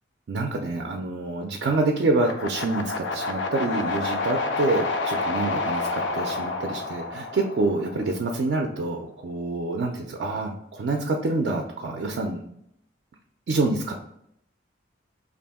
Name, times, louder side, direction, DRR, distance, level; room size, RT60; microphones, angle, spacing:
voice 1, 0.3-12.4 13.5-14.0, right 2 dB, 60° right, 2 dB, 0.3 m, -27 dB
sound 1, 2.2-8.3, left 3 dB, 75° left, 0.4 m, -29 dB
2.7 x 2.4 x 3.5 m, 0.74 s
head